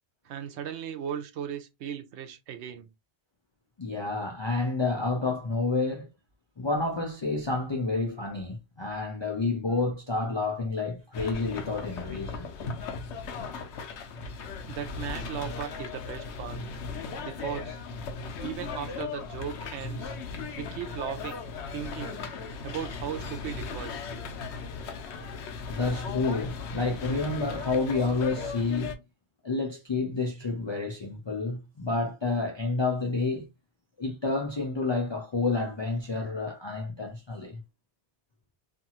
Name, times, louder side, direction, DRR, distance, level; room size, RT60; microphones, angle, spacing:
voice 1, 0.2-2.9 14.7-16.6 17.2-17.8 18.4-20.2 20.6-21.4 21.7-22.2 22.6-24.1, right 9 dB, 80° right, 0.9 m, -37 dB
voice 2, 3.8-6.1 6.6-12.5 25.7-28.9 29.4-33.5 34.0-37.6, left 3 dB, 50° left, 0.3 m, -29 dB
sound 1, 11.1-29.0, left 4 dB, 80° left, 0.9 m, -37 dB
2.6 x 2.4 x 2.8 m
omnidirectional pair, 1.1 m